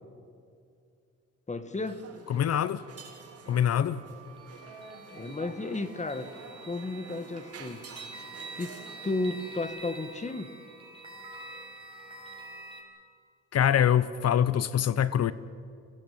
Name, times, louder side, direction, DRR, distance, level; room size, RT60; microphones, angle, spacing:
voice 1, 1.5-2.0 5.1-6.3 6.7-7.9 8.6-10.5, left 2 dB, 25° left, 11 dB, 1.6 m, -33 dB
sound 1, 1.7-9.6, right 4 dB, 55° right, 4.1 m, -48 dB
voice 2, 2.3-2.8 3.5-4.0 13.5-15.3, left 9 dB, 55° left, 17 dB, 0.8 m, -24 dB
sound 2, 2.8-12.8, right 3 dB, 15° right, 6.0 m, -47 dB
24.5 x 17.0 x 9.4 m, 2.4 s
cardioid pair, 90°, 30 cm